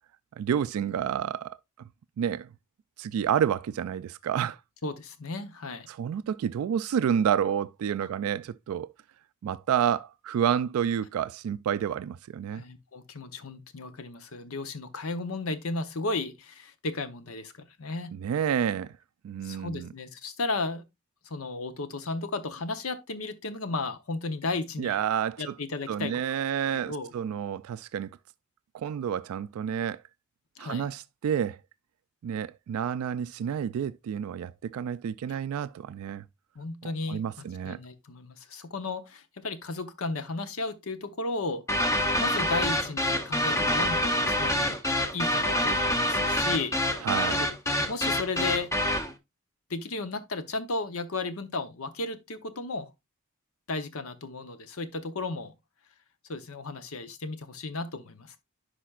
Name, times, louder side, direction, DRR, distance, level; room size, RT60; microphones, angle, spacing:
voice 1, 0.4-1.6 2.2-2.5 3.0-4.6 5.9-8.9 9.4-12.6 18.2-18.9 19.2-19.9 24.8-25.6 25.9-28.2 28.7-30.0 30.6-31.6 32.2-36.2 36.8-37.8 47.0-47.5, right 8 dB, 85° right, 0.3 m, -29 dB
voice 2, 4.8-5.9 8.0-8.1 12.5-17.5 17.8-18.1 19.4-20.8 21.2-25.0 25.4-26.4 26.9-27.1 30.6-30.9 35.3-35.4 36.5-37.2 37.6-44.8 45.1-46.7 47.0-47.1 47.7-48.7 49.7-52.9 53.7-55.5 56.3-58.4, left 3 dB, 75° left, 0.9 m, -34 dB
sound 1, 41.7-49.1, left 1 dB, 15° left, 0.7 m, -26 dB
10.0 x 5.0 x 2.4 m
head